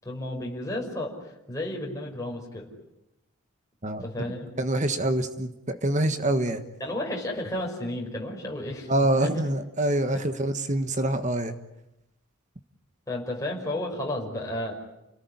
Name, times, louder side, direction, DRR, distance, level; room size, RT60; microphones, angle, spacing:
voice 1, 0.0-2.7 4.0-4.5 6.8-9.5 10.1-10.2 13.1-14.7, left 1 dB, 15° left, -2 dB, 5.5 m, -33 dB
voice 2, 4.6-6.6 8.9-11.5, right 1 dB, 35° right, 9 dB, 1.5 m, -25 dB
30.0 x 18.5 x 9.7 m, 0.92 s
head